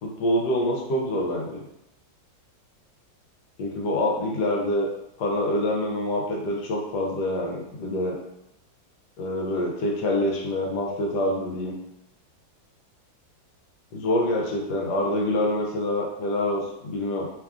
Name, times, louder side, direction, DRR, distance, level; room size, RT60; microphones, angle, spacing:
voice 1, 0.0-1.6 3.6-4.9 5.2-8.2 9.2-11.7 13.9-17.3, left 1 dB, 70° left, -1 dB, 1.1 m, -26 dB
3.2 x 2.3 x 2.3 m, 0.83 s
omnidirectional pair, 2.1 m